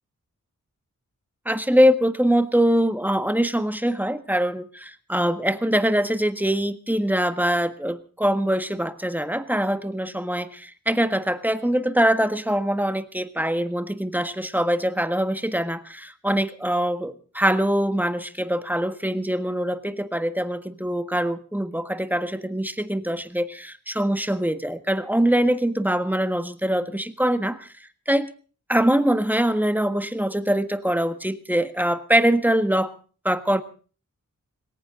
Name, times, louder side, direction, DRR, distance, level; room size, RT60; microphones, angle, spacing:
voice 1, 1.4-27.7 28.1-28.3 28.7-32.9 33.2-33.6, equal, 5° right, 10 dB, 1.5 m, -23 dB
20.5 x 18.0 x 3.8 m, 0.39 s
wide cardioid pair, 85°, 32 cm